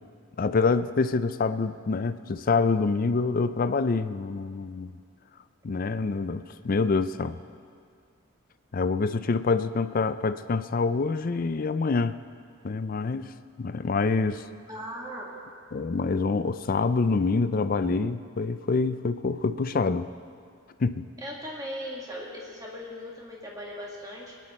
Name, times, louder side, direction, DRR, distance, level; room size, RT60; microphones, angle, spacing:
voice 1, 0.4-4.9 5.6-7.4 8.7-12.2 12.6-13.3 13.6-14.5 15.7-20.1 20.8-21.1, left 4 dB, 40° left, 12 dB, 0.4 m, -26 dB
voice 2, 14.7-15.4 21.2-24.3, equal, 15° right, -3 dB, 2.0 m, -38 dB
20.5 x 9.9 x 4.3 m, 2.2 s
head